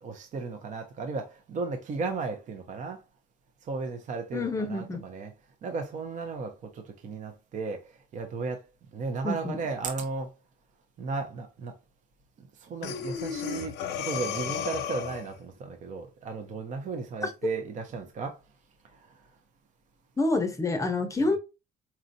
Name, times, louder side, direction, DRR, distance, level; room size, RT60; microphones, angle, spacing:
voice 1, 0.0-3.0 3.7-5.3 5.6-8.6 8.9-10.3 11.0-11.7 12.4-18.4 18.9-19.1 21.2-21.3, right 4 dB, 45° right, 0.7 m, -35 dB
voice 2, 4.3-5.0 9.2-9.6 17.2-17.3 20.2-21.4, left 2 dB, 20° left, 0.6 m, -27 dB
Breathing, 12.8-15.4, left 8 dB, 90° left, 0.7 m, -33 dB
4.3 x 2.4 x 2.6 m
cardioid pair, 110°, 17 cm